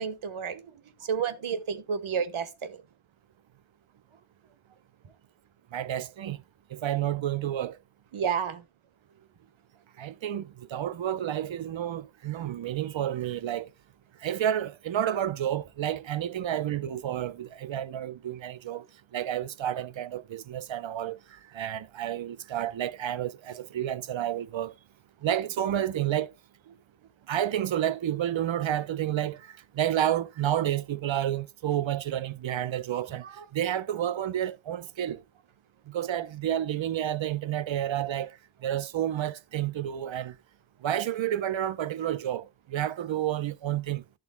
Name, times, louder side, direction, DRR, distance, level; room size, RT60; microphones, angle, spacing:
voice 1, 0.0-2.8 8.1-8.6 33.2-33.4, right 7 dB, 85° right, 1.3 m, -31 dB
voice 2, 5.7-6.4 6.7-7.8 10.0-13.7 14.2-18.9 19.1-24.7 25.2-26.3 27.3-33.3 33.5-35.2 35.9-38.3 38.6-40.4 40.8-44.0, right 11 dB, 70° right, 0.7 m, -30 dB
11.5 x 11.0 x 2.2 m
wide cardioid pair, 90°, 48 cm